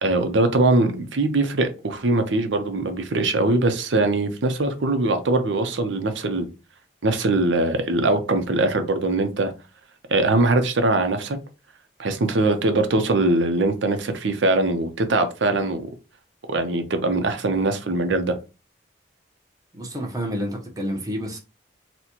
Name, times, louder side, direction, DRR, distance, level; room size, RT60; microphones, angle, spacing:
voice 1, 0.0-6.5 7.0-9.5 10.1-11.4 12.0-15.8 16.5-18.4, right 2 dB, 90° right, 0.6 m, -22 dB
voice 2, 19.7-21.4, equal, 20° right, 0.8 m, -29 dB
4.1 x 2.2 x 2.9 m
head